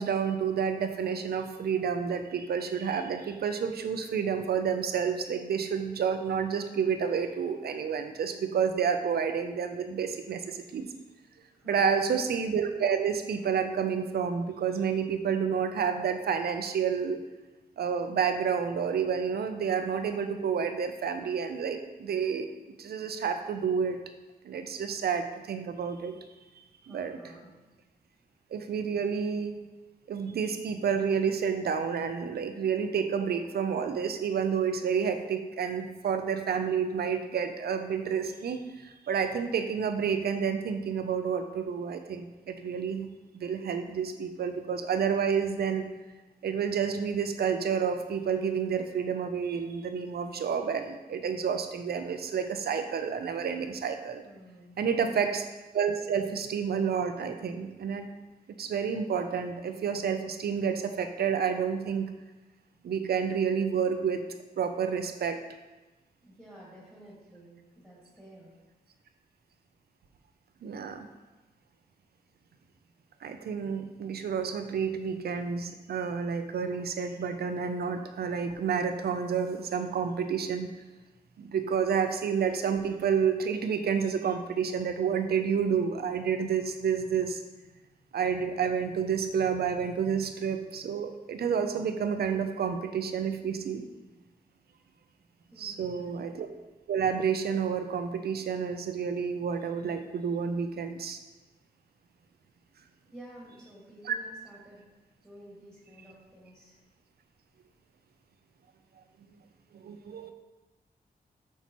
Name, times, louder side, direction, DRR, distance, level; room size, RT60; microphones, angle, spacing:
voice 1, 0.0-10.9 11.6-17.2 17.8-22.5 22.8-24.0 24.4-26.2 26.8-27.2 28.5-29.6 30.1-43.1 43.3-45.9 46.4-54.2 54.8-55.4 55.7-58.1 58.6-62.1 62.8-64.3 64.6-65.4 70.6-71.1 73.2-80.7 81.4-87.4 88.1-93.8 95.6-96.5 96.9-101.2 104.0-104.1 109.7-110.3, right 6 dB, 80° right, 7 dB, 0.5 m, -29 dB
voice 2, 11.5-12.1 26.8-27.6 54.2-54.9 66.2-68.5 95.5-96.1 103.0-104.9 105.2-106.8, right 1 dB, 5° left, -5 dB, 1.8 m, -51 dB
5.9 x 5.5 x 3.0 m, 1.1 s
wide cardioid pair, 125°, 16 cm